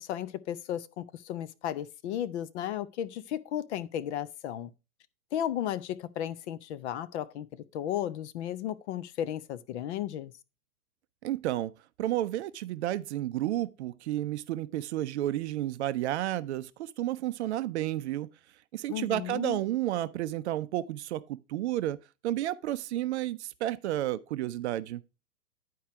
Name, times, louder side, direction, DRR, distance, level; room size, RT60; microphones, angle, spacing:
voice 1, 0.0-4.7 5.3-7.5 7.7-10.3 18.9-19.6, left 11 dB, 45° left, 0.7 m, -34 dB
voice 2, 11.2-11.7 12.0-18.3 18.7-22.0 22.2-25.0, right 13 dB, 45° right, 0.5 m, -31 dB
10.0 x 4.6 x 4.7 m
hypercardioid pair, 110°, 46 cm